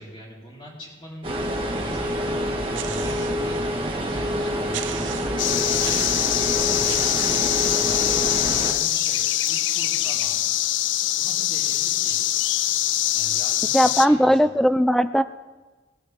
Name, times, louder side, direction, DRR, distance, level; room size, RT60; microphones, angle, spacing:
voice 1, 0.0-2.4 3.0-6.2 6.7-10.5 11.1-12.2 13.1-14.6, equal, 30° left, -5 dB, 4.2 m, -42 dB
sound 1, 1.2-8.7, equal, 30° right, 1.8 m, -27 dB
sound 2, 2.7-3.4 4.0-4.1 4.7-5.4 5.8-6.4 6.9-7.5, right 11 dB, 90° right, 0.7 m, -35 dB
sound 3, 5.4-14.1, left 14 dB, 80° left, 0.4 m, -23 dB
voice 2, 13.7-15.2, equal, ahead, 12 dB, 0.4 m, -18 dB
20.0 x 12.0 x 3.6 m, 1.2 s
head